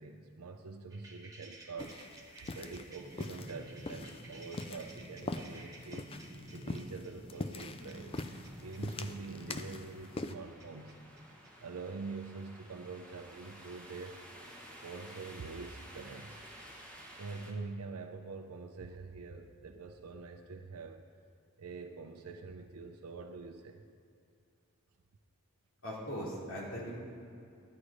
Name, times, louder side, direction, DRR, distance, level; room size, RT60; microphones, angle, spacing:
voice 1, 0.0-2.0 2.3-8.3 8.6-11.0 11.6-14.2 14.8-16.4 17.1-21.0 21.6-23.8, right 4 dB, 85° right, 4 dB, 0.6 m, -45 dB
sound 1, 0.9-11.5, right 1 dB, 15° right, 1.3 m, -51 dB
sound 2, 1.8-10.3, left 2 dB, 25° left, 0.4 m, -44 dB
sound 3, 7.7-17.5, equal, 5° left, 1.2 m, -54 dB
voice 2, 25.8-27.0, equal, 60° left, -5 dB, 2.8 m, -39 dB
11.5 x 8.4 x 4.9 m, 2.6 s
head